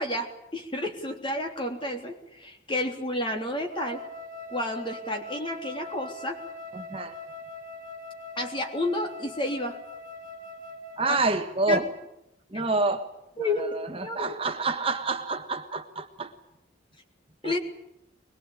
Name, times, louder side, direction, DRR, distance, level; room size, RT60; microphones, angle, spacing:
voice 1, 0.0-4.0 4.5-6.4 8.4-9.7 11.7-11.8 13.4-13.6 14.0-14.4 17.4-17.6, left 1 dB, 25° left, 4 dB, 3.5 m, -30 dB
Wind instrument woodwind instrument, 3.7-11.3, left 2 dB, 45° right, 4.0 m, -42 dB
voice 2, 6.7-7.2 11.0-11.9 12.5-13.1 13.4-16.3 17.4-17.6, right 3 dB, 30° right, 5 dB, 1.4 m, -28 dB
23.0 x 22.5 x 8.9 m, 0.85 s
head